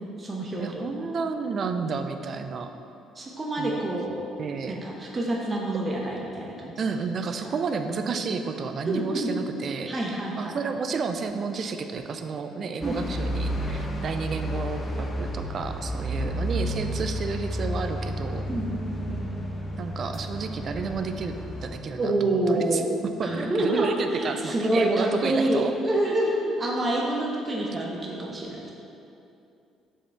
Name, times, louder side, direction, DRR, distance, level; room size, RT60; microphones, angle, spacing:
voice 1, 0.0-0.9 3.1-4.3 4.7-6.8 7.4-7.5 7.8-7.9 8.8-9.3 9.9-10.6 12.8-13.0 18.5-19.4 22.0-22.9 23.2-28.7, right 1 dB, 30° right, -2 dB, 0.9 m, -27 dB
voice 2, 0.6-2.7 3.6-3.8 4.4-4.8 6.8-9.9 10.4-18.4 19.8-21.4 21.6-22.8 23.2-25.7, right 5 dB, 50° right, 7 dB, 0.5 m, -31 dB
sound 1, 12.8-21.8, equal, 25° left, 0.8 m, -31 dB
7.1 x 4.6 x 3.4 m, 2.7 s
supercardioid pair, 65°, 0 cm